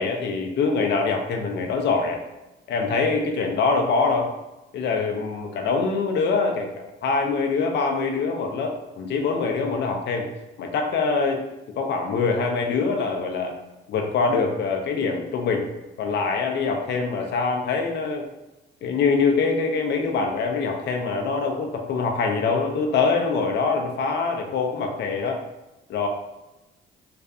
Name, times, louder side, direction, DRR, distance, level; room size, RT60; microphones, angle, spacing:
voice 1, 0.0-2.2 2.7-4.3 4.7-10.3 10.6-11.4 11.8-13.5 13.9-15.7 16.0-18.2 18.8-25.4 25.9-26.1, left 4 dB, 60° left, 2 dB, 0.5 m, -24 dB
2.5 x 2.4 x 2.2 m, 1.0 s
cardioid pair, 90°, 20 cm